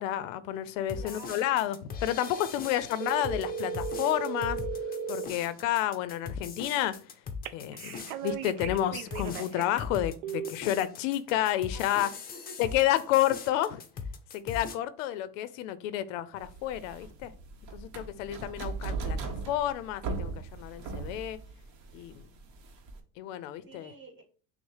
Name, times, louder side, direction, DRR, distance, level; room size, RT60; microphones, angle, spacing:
voice 1, 0.0-4.6 5.1-7.0 7.5-12.1 12.6-13.8 14.3-17.3 17.7-21.4 21.9-22.2 23.2-23.9, left 12 dB, 90° left, 0.5 m, -30 dB
sound 1, 0.9-14.8, left 5 dB, 25° left, 0.5 m, -40 dB
voice 2, 0.9-1.6 2.7-2.8 11.7-12.7 23.6-24.2, right 1 dB, 30° right, 1.7 m, -49 dB
sound 2, 3.0-5.3 7.4-9.8 10.2-10.5, right 6 dB, 85° right, 0.5 m, -36 dB
sound 3, 16.4-23.0, right 4 dB, 50° right, 0.9 m, -38 dB
6.0 x 2.1 x 3.2 m
supercardioid pair, 120°, 37 cm